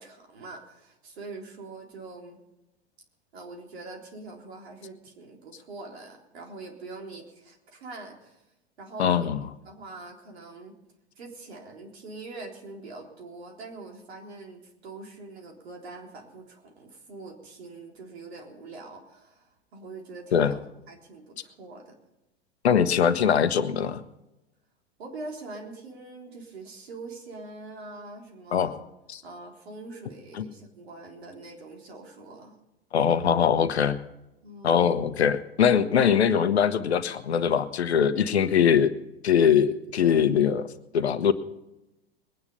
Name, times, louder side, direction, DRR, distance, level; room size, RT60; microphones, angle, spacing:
voice 1, 0.0-2.4 3.3-8.4 8.8-9.3 9.7-10.7 11.2-21.9 25.0-28.8 29.2-32.5 34.4-35.0 40.0-40.3, right 3 dB, 70° right, 1 dB, 3.8 m, -43 dB
voice 2, 9.0-9.4 20.3-20.5 22.6-24.0 28.5-28.8 29.1-29.2 30.4-30.5 32.9-34.0 34.6-38.9 39.2-40.7 40.9-41.3, left 8 dB, 75° left, 12 dB, 1.1 m, -22 dB
21.5 x 9.7 x 5.5 m, 0.93 s
hypercardioid pair, 90°, 32 cm